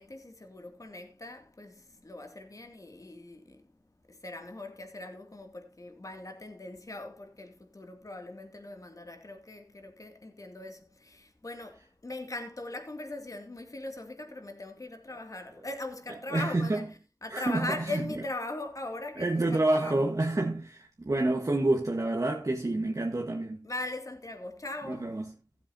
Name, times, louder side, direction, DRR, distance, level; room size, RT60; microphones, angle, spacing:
voice 1, 0.0-3.7 4.1-19.4 19.7-20.1 23.6-25.2, left 2 dB, 55° left, 2.4 m, -40 dB
voice 2, 16.3-16.8 17.3-18.1 19.2-23.7 24.9-25.3, right 2 dB, 55° right, 1.4 m, -28 dB
16.5 x 7.7 x 2.7 m
wide cardioid pair, 45°, 7 cm